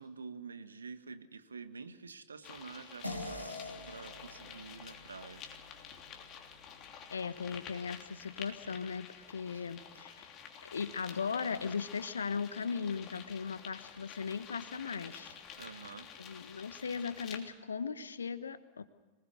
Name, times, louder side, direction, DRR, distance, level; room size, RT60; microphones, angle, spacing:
voice 1, 0.0-3.6 3.9-5.4 9.5-9.7 15.5-16.1, right 5 dB, 75° right, 10 dB, 1.5 m, -48 dB
sound 1, 2.4-17.4, left 7 dB, 35° left, 3.1 m, -50 dB
sound 2, 3.0-7.8, left 2 dB, 90° left, 2.4 m, -47 dB
voice 2, 7.1-10.3 10.6-15.4 16.2-18.8, left 5 dB, 70° left, 13 dB, 1.2 m, -38 dB
26.0 x 20.0 x 6.7 m, 1.3 s
figure-of-eight pair, 90°, 0 cm